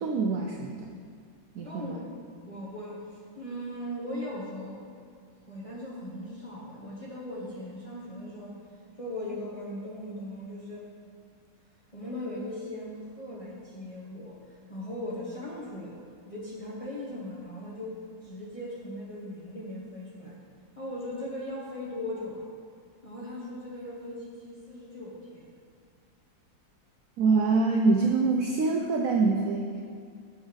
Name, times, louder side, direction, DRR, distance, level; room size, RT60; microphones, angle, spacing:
voice 1, 0.0-0.9 1.5-1.9 27.2-29.8, right 4 dB, 85° right, 2 dB, 0.7 m, -25 dB
voice 2, 1.6-2.1 2.4-5.0 5.5-8.6 9.0-10.9 11.9-16.0 16.2-20.4 20.8-22.5 23.0-25.5, left 1 dB, 25° left, -6 dB, 0.8 m, -39 dB
7.1 x 5.3 x 5.1 m, 2.2 s
omnidirectional pair, 2.0 m